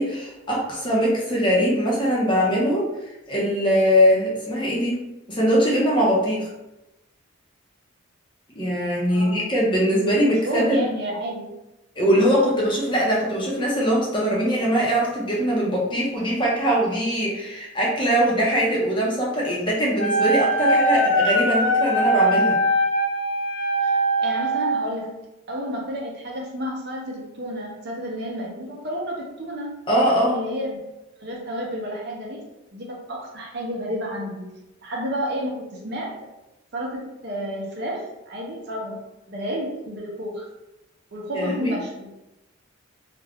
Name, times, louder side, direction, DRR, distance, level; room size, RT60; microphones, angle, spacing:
voice 1, 0.0-2.9 3.3-5.0 5.3-6.5 8.5-10.8 12.0-22.6 29.9-30.4 41.3-41.8, equal, 25° left, -4 dB, 0.6 m, -21 dB
voice 2, 9.1-9.5 10.2-11.5 23.8-29.8 30.3-30.8 31.2-32.4 32.7-34.5 34.8-36.2 36.7-39.0 39.3-40.5 41.1-42.1, equal, 50° right, -2 dB, 0.6 m, -31 dB
Wind instrument woodwind instrument, 20.0-24.8, right 1 dB, 85° left, 0.5 m, -21 dB
2.4 x 2.1 x 3.4 m, 0.95 s
head